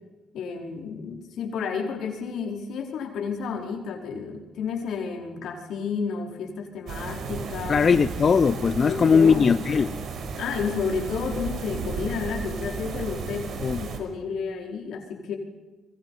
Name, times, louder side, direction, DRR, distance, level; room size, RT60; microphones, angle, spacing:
voice 1, 0.3-7.8 8.8-9.6 10.4-15.4, left 5 dB, 75° left, 2 dB, 4.9 m, -31 dB
sound 1, 6.9-14.0, right 5 dB, 70° right, 5.1 m, -34 dB
voice 2, 7.7-9.9 13.6-13.8, left 6 dB, 45° left, 12 dB, 0.8 m, -19 dB
28.0 x 23.5 x 5.8 m, 1.2 s
cardioid pair, 90°, 0 cm